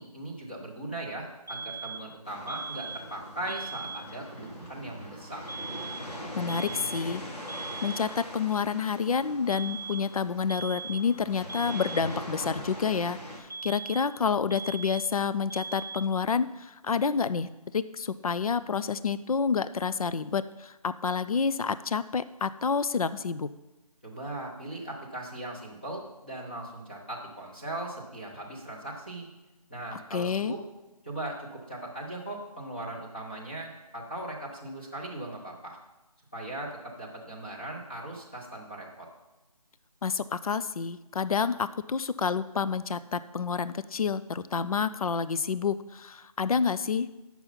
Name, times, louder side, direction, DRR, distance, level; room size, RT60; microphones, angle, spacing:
voice 1, 0.0-5.4 24.0-29.3 29.7-30.6 31.0-35.8 36.3-39.1, right 1 dB, 15° left, -5 dB, 0.9 m, -39 dB
sound 1, 1.5-2.1 2.5-3.1 3.5-4.1 5.5-6.2 6.5-7.2 7.5-8.2 9.5-10.2 10.5-11.2 11.5-12.2 13.5-14.2 14.5-15.2 15.5-16.2, right 4 dB, 30° right, 0.4 m, -39 dB
sound 2, 2.2-13.4, equal, 90° left, 3.2 m, -42 dB
voice 2, 6.4-7.2 7.8-23.5 30.1-30.5 40.0-47.1, left 6 dB, 65° left, 14 dB, 0.4 m, -29 dB
8.2 x 5.9 x 5.7 m, 1.0 s
figure-of-eight pair, 180°, 20 cm